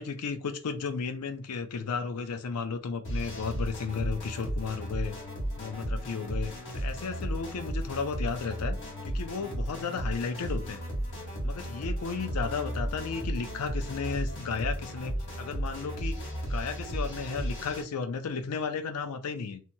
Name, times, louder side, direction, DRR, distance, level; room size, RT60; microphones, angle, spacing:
voice 1, 0.0-5.2 5.6-8.8 9.0-10.8 11.4-16.2 16.5-19.6, left 5 dB, 80° left, 0.5 m, -34 dB
sound 1, 3.0-17.8, equal, 55° left, 1.3 m, -34 dB
2.9 x 2.2 x 2.7 m
head